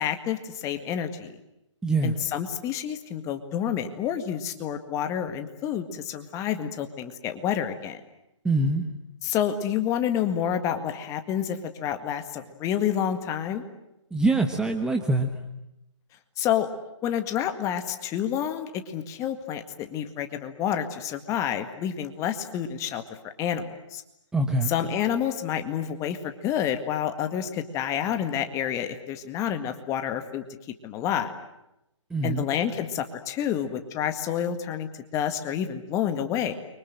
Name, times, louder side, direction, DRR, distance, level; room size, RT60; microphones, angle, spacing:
voice 1, 0.0-1.3 2.0-8.0 9.2-13.6 16.4-16.7 17.0-24.0 24.7-30.4 30.8-31.3 32.2-36.5, left 9 dB, 20° left, 8 dB, 1.9 m, -29 dB
voice 2, 1.8-2.1 8.4-8.9 14.1-15.3 24.3-24.7 32.1-32.5, right 2 dB, 5° right, 4 dB, 1.3 m, -24 dB
29.5 x 24.0 x 7.7 m, 0.88 s
figure-of-eight pair, 140°, 16 cm